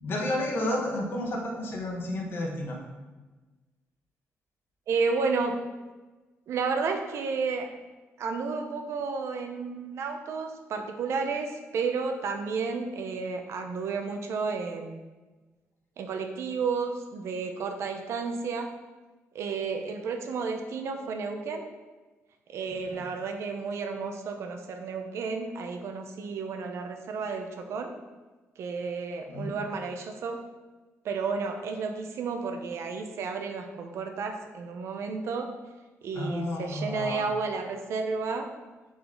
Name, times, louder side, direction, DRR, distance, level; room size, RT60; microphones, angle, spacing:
voice 1, 0.0-2.8 22.9-23.0 29.3-29.5 36.1-37.3, left 1 dB, 45° left, 0 dB, 1.1 m, -31 dB
voice 2, 4.9-5.6 6.5-7.7 8.2-15.0 16.0-18.7 19.3-21.7 22.5-27.9 28.6-30.4 31.0-35.5 36.0-38.5, right 4 dB, 65° right, 5 dB, 0.7 m, -32 dB
7.4 x 4.1 x 3.8 m, 1.2 s
wide cardioid pair, 175°, 5 cm